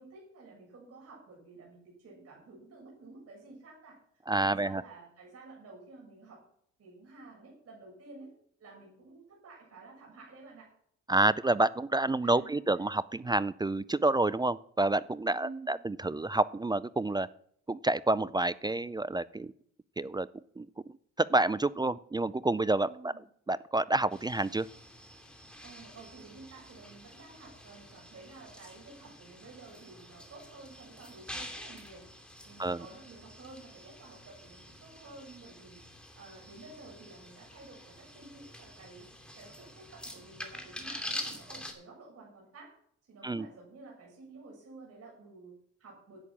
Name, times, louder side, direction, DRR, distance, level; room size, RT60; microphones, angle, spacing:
voice 1, 0.0-4.0 4.4-6.4 6.8-8.3 8.6-10.7 12.2-12.6 15.3-15.8 22.8-23.2 25.6-32.1 32.4-35.8 36.2-39.1 39.3-42.7 43.1-46.2, right 3 dB, 55° right, -2 dB, 7.1 m, -51 dB
voice 2, 4.3-4.8 11.1-17.3 17.7-19.5 20.0-20.3 20.6-20.7 21.2-23.1 23.5-24.7 32.6-32.8 43.2-43.5, right 2 dB, 15° right, 18 dB, 0.4 m, -28 dB
sound 1, 24.1-41.7, left 1 dB, 5° left, 2.7 m, -47 dB
11.0 x 8.6 x 7.3 m, 0.64 s
cardioid pair, 90°, 30 cm